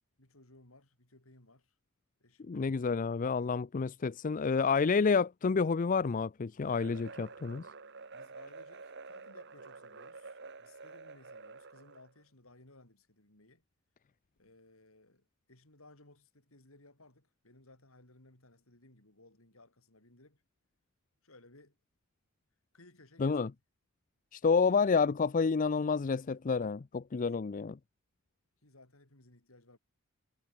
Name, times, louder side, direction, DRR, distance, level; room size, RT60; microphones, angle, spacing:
voice 1, 0.2-1.7 2.2-2.7 8.1-13.6 14.4-20.4 21.2-21.8 22.7-23.6 27.2-27.3 27.6-27.7 28.6-29.8, left 2 dB, 75° left, 5.3 m, -60 dB
voice 2, 2.5-7.6 23.2-23.5 24.3-27.8, left 5 dB, 40° left, 0.4 m, -29 dB
sound 1, 6.7-12.1, right 4 dB, 55° right, 1.8 m, -49 dB
head